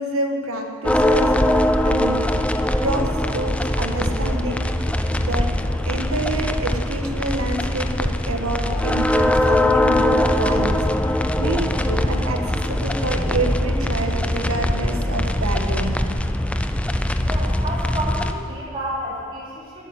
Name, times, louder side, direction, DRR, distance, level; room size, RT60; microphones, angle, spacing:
voice 1, 0.0-2.3 2.6-4.7 5.2-5.5 5.9-16.0, right 2 dB, 75° right, 3 dB, 1.5 m, -28 dB
sound 1, 0.8-18.3, left 1 dB, 5° left, 0.3 m, -21 dB
voice 2, 17.2-19.9, equal, 25° right, -7 dB, 3.6 m, -30 dB
12.5 x 8.3 x 9.0 m, 2.3 s
head